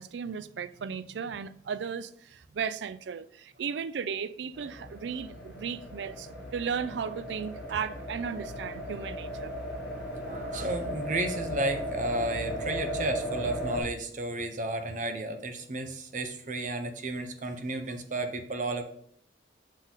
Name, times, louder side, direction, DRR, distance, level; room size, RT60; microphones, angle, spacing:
voice 1, 0.0-9.6, right 6 dB, 75° right, 0.4 m, -35 dB
sound 1, 4.5-13.8, equal, 10° right, 2.0 m, -36 dB
voice 2, 10.3-18.8, right 2 dB, 45° right, 0.8 m, -33 dB
6.5 x 4.2 x 3.9 m
head